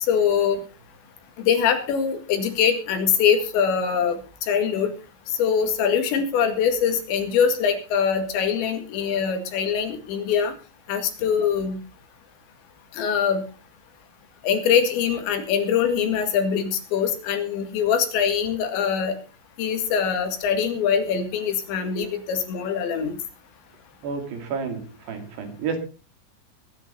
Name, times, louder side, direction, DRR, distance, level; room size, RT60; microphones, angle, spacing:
voice 1, 0.1-0.6 1.4-4.2 4.5-4.9 5.4-10.5 10.9-11.8 12.9-13.4 14.4-19.2 19.6-23.1, left 7 dB, 85° left, 6 dB, 4.4 m, -23 dB
voice 2, 24.0-25.8, right 5 dB, 70° right, 6 dB, 4.5 m, -30 dB
20.5 x 9.3 x 4.1 m, 0.35 s
omnidirectional pair, 5.0 m